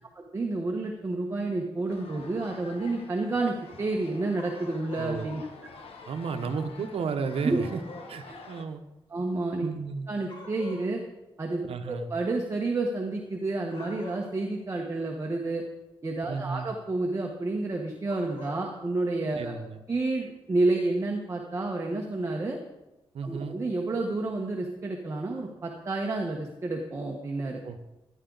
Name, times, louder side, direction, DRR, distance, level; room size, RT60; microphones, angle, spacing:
voice 1, 0.1-5.5 7.4-7.6 8.3-8.4 9.1-9.7 10.1-11.0 11.4-15.6 16.0-19.5 19.9-22.6 23.2-27.6, right 2 dB, 30° right, 1 dB, 1.3 m, -30 dB
sound 1, 1.9-8.7, left 4 dB, 90° left, 1.3 m, -48 dB
sound 2, 4.3-5.1 7.3-8.1 10.3-10.9 13.6-14.4 18.0-18.6, left 3 dB, 60° left, 3.1 m, -45 dB
voice 2, 5.0-5.3 6.1-7.8 8.1-8.8 9.6-10.1 11.7-12.1 16.3-16.7 19.4-19.8 23.1-23.6 27.6-27.8, right 5 dB, 85° right, 8 dB, 1.0 m, -33 dB
14.5 x 11.5 x 4.0 m, 1.0 s
wide cardioid pair, 135°, 10 cm